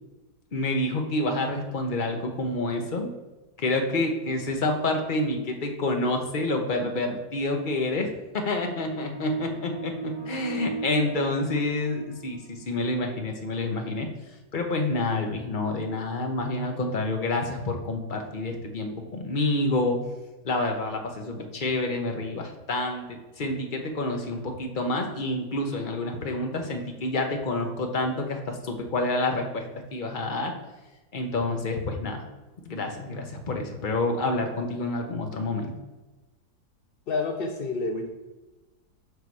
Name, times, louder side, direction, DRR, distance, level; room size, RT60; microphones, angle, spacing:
voice 1, 0.5-3.1 3.6-14.1 14.5-20.0 20.4-29.6 29.9-30.5 31.1-32.2 32.6-35.7, left 2 dB, 40° left, 3 dB, 0.9 m, -28 dB
sound 1, 8.7-12.7, right 4 dB, 70° right, 3.2 m, -38 dB
voice 2, 37.1-38.1, left 3 dB, 65° left, 4 dB, 0.5 m, -28 dB
6.8 x 5.6 x 4.7 m, 1.1 s
omnidirectional pair, 1.7 m